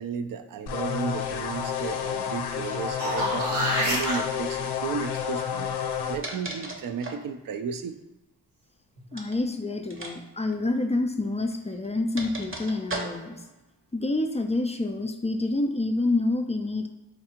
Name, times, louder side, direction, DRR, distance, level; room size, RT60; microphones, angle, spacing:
voice 1, 0.0-3.5 3.8-5.7 6.1-8.0, right 6 dB, 55° right, 10 dB, 0.5 m, -33 dB
sound 1, 0.7-6.2, left 8 dB, 70° left, 0.5 m, -30 dB
sound 2, 2.7-4.2 9.0-9.1, equal, 80° right, 1.4 m, -27 dB
sound 3, 3.2-3.5 3.9-4.3 5.8-7.3 9.1-9.4 9.9-10.1 10.4-10.5 11.5-13.4, right 2 dB, 30° right, 0.8 m, -37 dB
voice 2, 9.1-13.4 13.9-16.9, left 2 dB, 15° left, 5 dB, 0.4 m, -27 dB
4.5 x 2.3 x 2.8 m, 1.0 s
cardioid pair, 45°, 40 cm